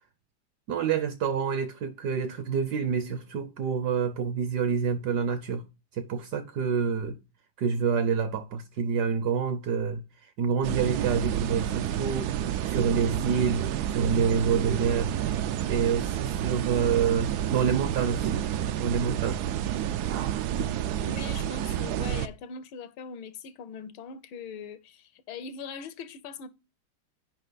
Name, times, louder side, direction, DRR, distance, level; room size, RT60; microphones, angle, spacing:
voice 1, 0.7-5.6 5.9-7.2 7.6-10.0 10.4-12.3 12.7-13.6 13.9-15.1 15.7-18.4 18.8-19.4, right 6 dB, 65° right, 1.0 m, -27 dB
sound 1, 10.6-22.3, right 10 dB, 85° right, 0.8 m, -29 dB
voice 2, 21.0-26.5, left 5 dB, 80° left, 1.5 m, -41 dB
8.9 x 5.3 x 3.9 m
omnidirectional pair, 2.3 m